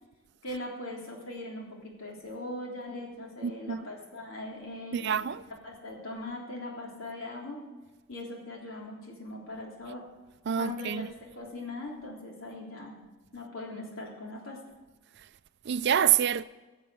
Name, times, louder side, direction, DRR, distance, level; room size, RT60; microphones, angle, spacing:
voice 1, 0.4-7.6 8.1-10.0 10.6-13.0 13.3-14.6, left 2 dB, 80° left, 3.4 m, -40 dB
voice 2, 3.4-3.9 4.9-5.4 10.5-11.1 15.7-16.4, right 9 dB, 55° right, 0.4 m, -27 dB
15.0 x 7.3 x 7.7 m
head